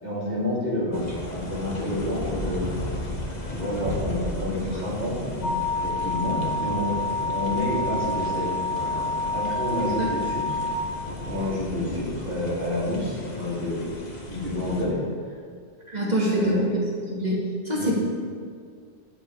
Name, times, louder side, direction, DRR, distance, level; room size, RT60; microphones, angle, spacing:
voice 1, 0.0-2.6 3.5-8.5 9.3-10.6 11.3-13.9 14.2-15.0 16.3-16.6 17.8-17.9, left 1 dB, 60° right, -9 dB, 3.2 m, -29 dB
sound 1, 0.9-14.8, left 1 dB, 40° left, 1.4 m, -35 dB
sound 2, 5.4-10.7, left 2 dB, 75° left, 2.5 m, -28 dB
voice 2, 15.9-16.7 17.1-17.4 17.6-18.0, equal, 40° right, -5 dB, 2.7 m, -24 dB
10.5 x 10.0 x 4.9 m, 2.1 s
omnidirectional pair, 1.1 m